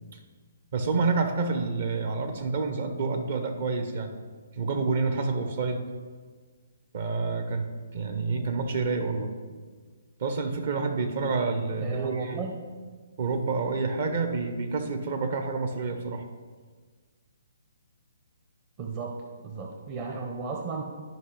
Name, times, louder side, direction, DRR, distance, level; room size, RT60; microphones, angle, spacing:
voice 1, 0.7-4.1 4.6-5.8 6.9-9.3 10.2-12.4 13.2-16.2, right 4 dB, 50° right, 6 dB, 1.0 m, -28 dB
voice 2, 11.8-12.5 18.8-19.1 19.4-20.8, right 5 dB, 30° right, 2 dB, 0.8 m, -34 dB
12.0 x 5.4 x 3.3 m, 1.5 s
figure-of-eight pair, 130°, 0 cm